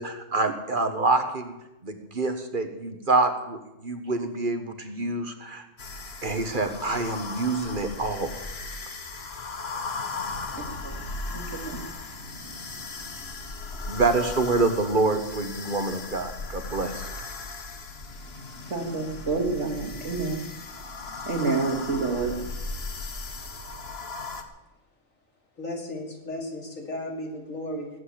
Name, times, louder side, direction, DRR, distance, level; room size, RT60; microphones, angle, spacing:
voice 1, 0.0-1.5 1.8-5.7 6.2-8.4 13.9-17.1, right 3 dB, 40° right, 8 dB, 1.3 m, -26 dB
sound 1, 5.8-24.4, left 3 dB, 50° left, 1.5 m, -37 dB
voice 2, 10.3-13.0 18.7-20.4 21.3-22.4, right 3 dB, 60° right, 3 dB, 2.7 m, -30 dB
voice 3, 25.6-27.9, left 1 dB, 80° left, 2 dB, 3.3 m, -35 dB
18.5 x 8.2 x 8.7 m, 0.97 s
omnidirectional pair, 1.4 m